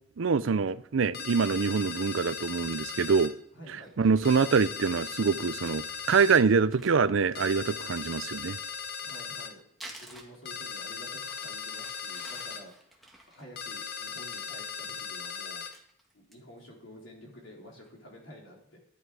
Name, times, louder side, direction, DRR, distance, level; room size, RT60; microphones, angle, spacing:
voice 1, 0.2-3.3 4.0-8.6, right 5 dB, 80° right, 0.5 m, -25 dB
sound 1, 1.1-3.3 4.2-6.4 7.3-9.5 10.5-12.6 13.6-15.7, left 6 dB, 55° left, 0.9 m, -38 dB
voice 2, 3.5-3.9 9.0-9.6 9.9-15.6 16.1-18.8, equal, 80° left, 3.9 m, -50 dB
Crumpling crinkling, 3.8-4.5 5.1-5.2 5.4-5.5 5.7-5.8 6.1-6.2 6.5-7.8 8.9-10.8 11.2-14.4 14.8-15.1 15.4-16.6 17.0-17.1 17.5-17.9, right 1 dB, ahead, 1.6 m, -52 dB
11.0 x 11.0 x 4.8 m
head